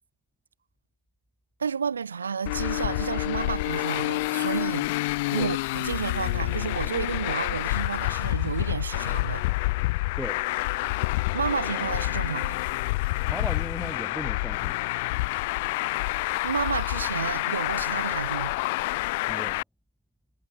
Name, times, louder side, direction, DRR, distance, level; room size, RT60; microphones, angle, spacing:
voice 1, 1.6-4.9 5.3-9.5 11.3-12.6 16.4-18.5, right 6 dB, 70° right, 4.0 m, -31 dB
Traffic noise roadway noise, 2.4-19.6, left 22 dB, 40° left, 3.9 m, -28 dB
voice 2, 13.3-14.8 19.3-19.6, equal, ahead, 4.2 m, -37 dB
figure-of-eight pair, 115°, 0 cm